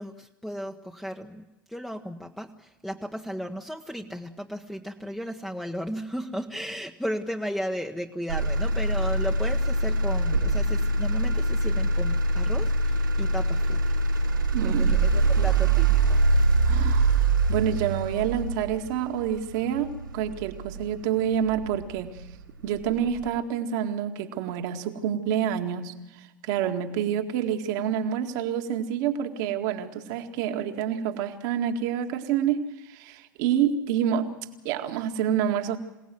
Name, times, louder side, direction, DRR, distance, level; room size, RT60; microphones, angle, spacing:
voice 1, 0.0-14.0 14.6-16.2, equal, ahead, 2 dB, 1.2 m, -35 dB
Motor vehicle (road), 8.3-22.3 22.8-23.3, right 2 dB, 85° right, 5.4 m, -24 dB
voice 2, 14.5-16.1 16.7-22.1 22.6-25.9 26.4-34.3 34.6-35.8, right 9 dB, 60° right, 5 dB, 2.0 m, -28 dB
27.0 x 18.0 x 7.8 m, 1.0 s
figure-of-eight pair, 80°, 11 cm